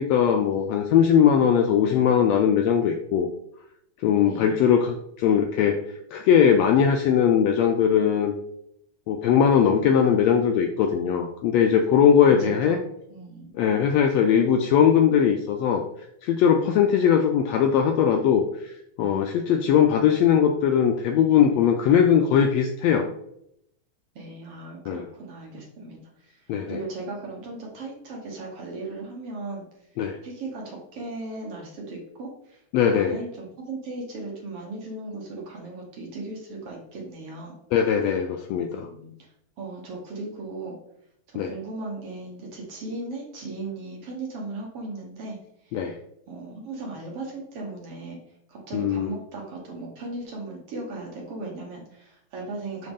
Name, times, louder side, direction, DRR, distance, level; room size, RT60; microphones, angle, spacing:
voice 1, 0.0-3.3 4.0-5.8 6.1-8.3 9.1-12.8 13.6-15.8 16.2-18.7 19.0-23.1 24.9-25.0 26.5-26.8 30.0-30.2 32.7-33.2 37.7-38.9 41.4-41.5 45.7-45.9 48.7-49.1, left 8 dB, 80° left, 4 dB, 1.5 m, -20 dB
voice 2, 4.3-4.6 12.3-12.8 13.1-13.5 24.2-29.7 30.2-37.6 38.8-39.3 39.6-40.8 41.3-45.4 45.6-45.9 46.3-48.2 48.5-52.9, right 2 dB, 55° right, -1 dB, 2.1 m, -37 dB
6.4 x 5.7 x 3.6 m, 0.75 s
omnidirectional pair, 3.4 m